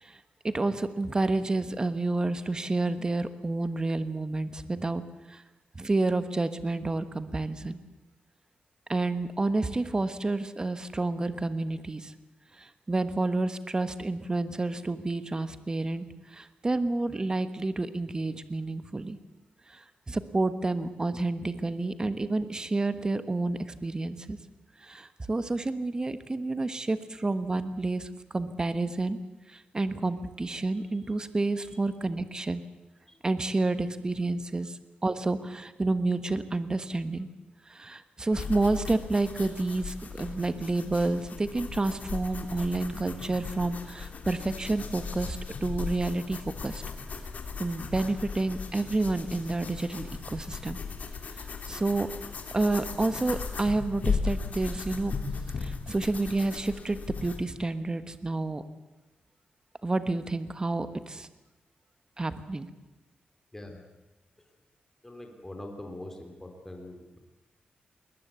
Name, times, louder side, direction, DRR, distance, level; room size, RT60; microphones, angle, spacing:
voice 1, 0.0-5.0 5.3-5.4 5.7-7.8 8.9-12.1 12.6-19.2 19.7-24.4 24.8-29.2 29.5-32.6 33.2-37.3 37.7-46.8 47.6-50.8 51.7-52.1 52.5-55.1 55.6-58.6 59.8-61.3 62.2-62.7, right 2 dB, 25° right, 12 dB, 1.4 m, -29 dB
sound 1, 38.3-57.4, left 5 dB, 55° left, 3.0 m, -37 dB
voice 2, 63.5-63.8 65.0-67.2, left 1 dB, 10° left, 3 dB, 3.3 m, -43 dB
21.0 x 20.5 x 8.3 m, 1.0 s
wide cardioid pair, 115°, 3 cm